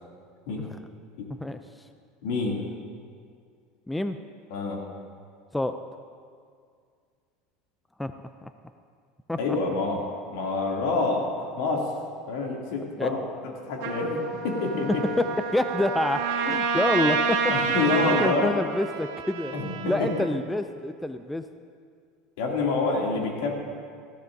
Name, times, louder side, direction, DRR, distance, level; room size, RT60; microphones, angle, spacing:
voice 1, 2.2-2.6 4.5-4.8 9.4-10.0 10.3-11.9 12.3-13.2 13.7-14.9 17.5-18.5 19.5-19.9 22.4-23.5, left 3 dB, 70° left, -1 dB, 2.6 m, -27 dB
voice 2, 3.9-4.2 5.5-5.8 8.0-8.1 8.4-8.5 9.3-9.4 13.0-13.1 15.2-15.3 15.5-19.5 19.9-21.4, left 1 dB, 5° left, 9 dB, 0.3 m, -27 dB
Trumpet, 13.8-18.3, right 5 dB, 70° right, 1.7 m, -27 dB
Trumpet 2, 16.2-20.4, right 7 dB, 85° right, 1.2 m, -41 dB
19.5 x 15.0 x 2.7 m, 2.2 s
supercardioid pair, 160°, 0 cm